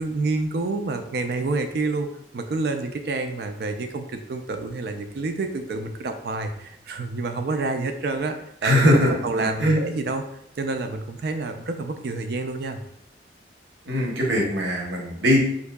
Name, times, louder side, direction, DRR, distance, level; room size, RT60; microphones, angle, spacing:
voice 1, 0.0-2.1 2.3-8.8 9.2-10.2 10.6-12.8, right 3 dB, 60° right, 7 dB, 0.4 m, -28 dB
voice 2, 8.6-9.8 13.9-15.5, equal, 80° right, -1 dB, 0.9 m, -21 dB
4.7 x 2.6 x 2.2 m, 0.73 s
head